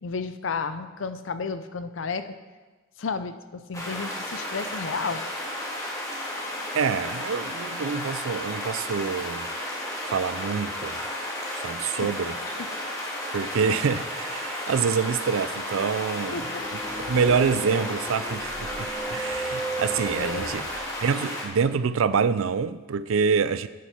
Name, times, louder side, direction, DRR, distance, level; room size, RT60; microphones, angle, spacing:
voice 1, 0.0-2.3 3.0-5.2 11.6-12.3 16.3-16.6 20.1-20.7, left 5 dB, 65° left, 0.6 m, -33 dB
sound 1, 3.7-21.4, left 1 dB, 15° left, 2.0 m, -33 dB
voice 2, 6.7-9.5 10.1-11.0 11.5-12.3 13.3-16.4 17.1-20.6 21.0-23.7, right 6 dB, 85° right, 0.4 m, -26 dB
sound 2, 16.1-20.8, right 3 dB, 35° left, 1.5 m, -36 dB
8.6 x 8.0 x 5.8 m
head